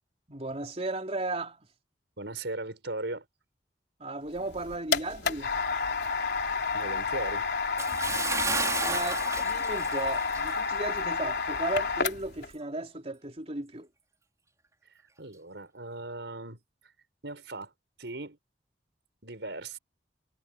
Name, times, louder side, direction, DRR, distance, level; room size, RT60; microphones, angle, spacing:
voice 1, 0.3-1.7 4.0-5.5 8.7-13.9, right 2 dB, 35° right, 3.9 m, -35 dB
voice 2, 2.2-3.2 6.7-7.5 15.2-16.6 17.2-17.7 18.0-18.4 19.2-19.8, right 2 dB, 90° right, 5.1 m, -38 dB
sound 1, 4.4-12.5, left 5 dB, 70° left, 3.6 m, -30 dB
Bathtub (filling or washing) / Splash splatter, 7.8-10.6 11.0-11.1 11.7-11.8, right 4 dB, 20° right, 5.3 m, -33 dB
head